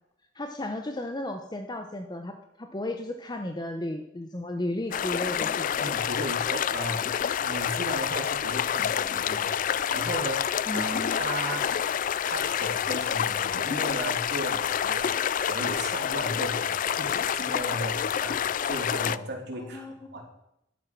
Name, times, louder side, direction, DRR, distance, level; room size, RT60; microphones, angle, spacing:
voice 1, 0.4-5.8 10.7-11.2 19.5-19.9, left 1 dB, 25° left, 5 dB, 0.8 m, -34 dB
sound 1, 4.9-19.2, left 9 dB, 45° left, 0.3 m, -28 dB
voice 2, 5.8-7.0 7.4-11.6 12.2-20.2, right 1 dB, 60° right, 0 dB, 3.0 m, -36 dB
12.0 x 8.9 x 5.9 m, 0.80 s
head